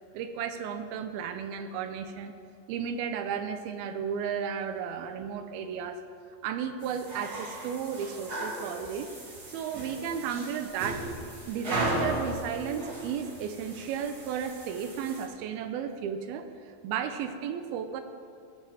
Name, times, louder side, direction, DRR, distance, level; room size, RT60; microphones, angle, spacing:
voice 1, 0.1-2.3 2.7-6.0 6.4-9.1 9.5-11.1 11.5-18.0, right 7 dB, 80° right, 8 dB, 2.4 m, -34 dB
sound 1, 6.8-15.3, right 1 dB, 35° right, 1.7 m, -36 dB
18.5 x 6.7 x 4.7 m, 2.2 s
omnidirectional pair, 4.7 m